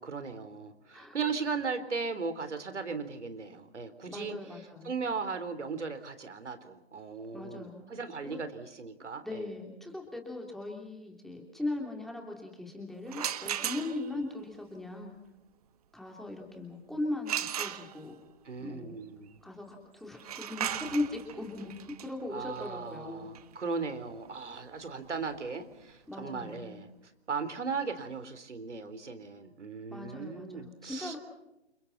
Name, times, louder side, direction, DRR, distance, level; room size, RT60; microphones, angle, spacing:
voice 1, 0.0-4.4 4.8-9.5 18.5-19.4 22.3-26.9 27.3-31.1, right 5 dB, 90° right, 10 dB, 3.9 m, -37 dB
voice 2, 4.1-4.9 7.3-7.9 8.2-8.4 9.2-15.1 15.9-18.2 18.6-19.0 19.4-23.3 26.1-26.8 29.9-31.2, left 2 dB, ahead, 1 dB, 2.9 m, -38 dB
sound 1, 13.1-14.2 17.3-18.3 20.1-25.8, right 10 dB, 35° right, 1.4 m, -38 dB
29.5 x 28.5 x 4.1 m, 0.87 s
hypercardioid pair, 160°, 34 cm